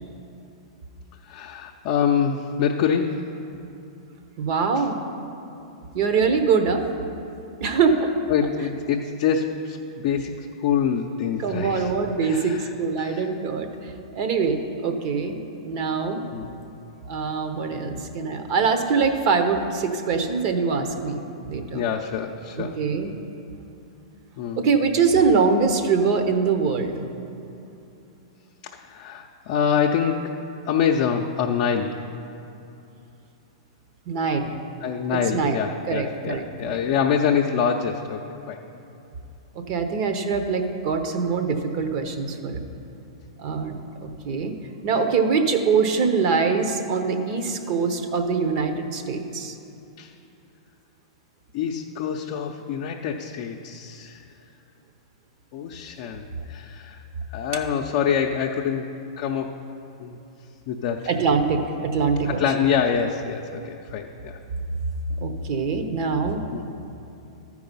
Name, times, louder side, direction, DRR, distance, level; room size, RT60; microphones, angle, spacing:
voice 1, 1.3-3.2 8.3-10.3 10.6-11.9 12.2-12.7 13.0-13.3 16.3-16.5 17.7-18.0 21.7-22.7 24.4-24.6 28.7-30.3 30.7-32.0 34.8-38.6 50.0-50.1 51.5-54.2 55.5-57.0 57.3-58.9 59.2-59.5 60.0-60.2 60.7-61.0 62.2-64.4 66.5-66.7, left 7 dB, 50° left, 1 dB, 0.5 m, -25 dB
voice 2, 4.4-5.0 5.9-6.8 7.6-8.1 11.4-15.4 15.6-16.2 17.1-21.8 22.6-23.1 24.6-27.0 34.1-34.5 35.1-35.6 35.9-36.8 39.7-42.6 43.4-44.5 44.8-49.5 61.1-62.4 65.2-66.4, right 5 dB, 50° right, 6 dB, 0.9 m, -23 dB
13.0 x 4.8 x 5.4 m, 2.8 s
hypercardioid pair, 115°, 3 cm